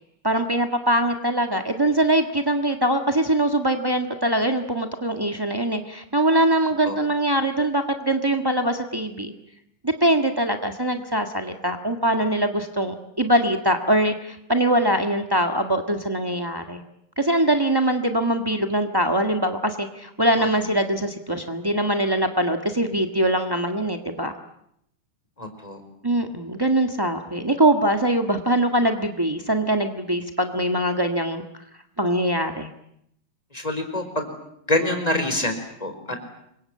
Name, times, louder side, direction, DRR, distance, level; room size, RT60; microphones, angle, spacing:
voice 1, 0.2-9.3 9.8-16.8 17.2-24.3 26.0-31.4 32.0-32.7, right 1 dB, 35° right, 5 dB, 0.3 m, -22 dB
voice 2, 25.4-25.8 33.5-34.3 34.7-36.2, left 1 dB, 10° left, 6 dB, 4.2 m, -26 dB
27.5 x 24.0 x 8.7 m, 0.74 s
omnidirectional pair, 3.7 m